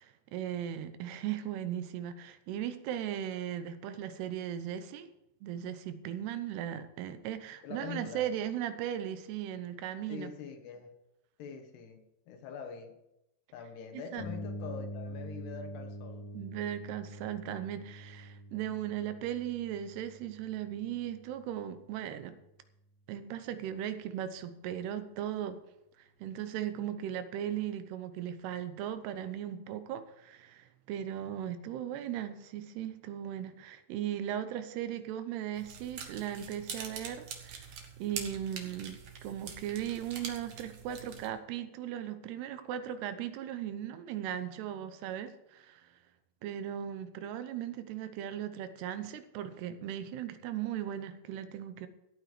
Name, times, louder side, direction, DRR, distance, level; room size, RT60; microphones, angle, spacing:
voice 1, 0.0-5.1 5.4-10.3 13.9-14.3 16.3-22.4 23.1-25.6 26.2-37.7 38.0-45.9 46.4-51.9, right 10 dB, 80° right, 10 dB, 2.9 m, -37 dB
voice 2, 7.6-8.3 10.1-11.0 11.4-13.0 13.5-16.3, left 6 dB, 80° left, 6 dB, 3.5 m, -44 dB
sound 1, 14.2-21.9, equal, 30° left, 2.0 m, -45 dB
sound 2, 35.5-41.3, right 6 dB, 55° right, 2.3 m, -44 dB
14.5 x 9.1 x 5.0 m, 0.88 s
omnidirectional pair, 4.7 m